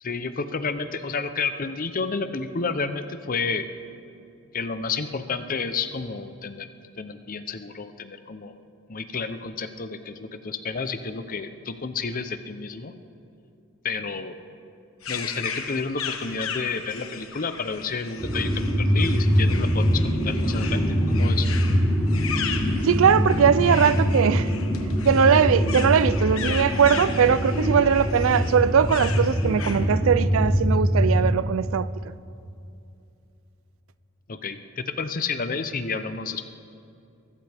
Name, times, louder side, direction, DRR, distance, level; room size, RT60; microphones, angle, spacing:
voice 1, 0.0-3.7 4.5-6.7 7.0-8.6 8.9-12.9 13.8-14.3 15.1-21.5 34.3-36.5, left 4 dB, 45° left, 0.7 m, -30 dB
sound 1, 15.0-29.8, left 6 dB, 85° left, 1.3 m, -36 dB
sound 2, 18.2-31.4, equal, ahead, 3.4 m, -23 dB
voice 2, 22.8-24.6 25.0-32.1, right 7 dB, 75° right, 0.4 m, -20 dB
23.0 x 14.5 x 3.5 m
head